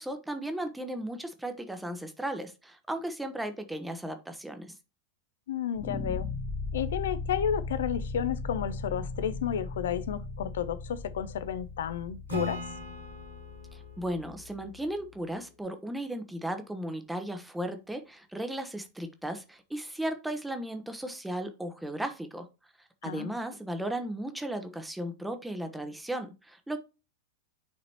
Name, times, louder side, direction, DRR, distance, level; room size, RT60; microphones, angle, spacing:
voice 1, 0.0-4.7 13.7-22.5 23.0-26.8, right 1 dB, 5° right, 0.8 m, -36 dB
voice 2, 5.5-6.3 6.7-12.6 23.0-23.4, left 9 dB, 60° left, 0.5 m, -32 dB
sound 1, 5.7-14.9, left 3 dB, 15° left, 1.1 m, -38 dB
Acoustic guitar / Strum, 12.3-15.7, left 1 dB, 85° right, 3.5 m, -40 dB
9.5 x 4.0 x 2.9 m
figure-of-eight pair, 90°, 0 cm